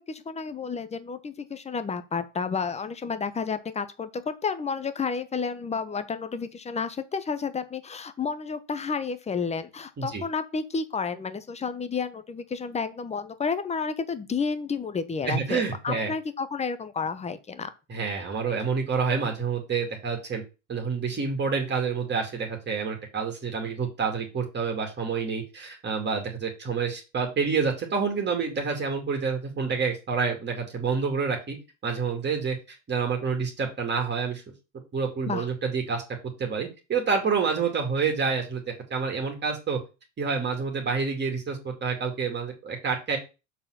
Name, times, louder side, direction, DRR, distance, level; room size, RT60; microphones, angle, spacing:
voice 1, 0.0-17.7 35.3-35.5, left 5 dB, 15° left, 12 dB, 1.0 m, -31 dB
voice 2, 15.2-16.1 17.9-20.4 20.7-31.6 31.8-34.4 34.9-36.0 36.4-39.8 40.2-43.2, right 5 dB, 25° right, 2 dB, 2.4 m, -28 dB
6.9 x 4.1 x 6.4 m, 0.29 s
supercardioid pair, 110°, 39 cm